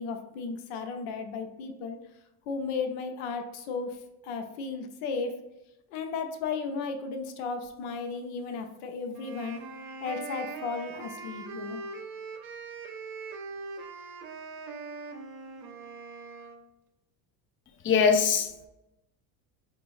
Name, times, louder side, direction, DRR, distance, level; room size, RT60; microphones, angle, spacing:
voice 1, 0.0-2.0 2.5-5.4 5.9-9.6 10.0-11.8, left 4 dB, 80° left, 6 dB, 0.8 m, -34 dB
sound 1, 9.1-16.6, right 4 dB, 60° right, 0.8 m, -41 dB
voice 2, 17.8-18.7, left 6 dB, 30° left, 5 dB, 0.6 m, -22 dB
4.9 x 2.6 x 3.1 m, 0.94 s
supercardioid pair, 105°, 42 cm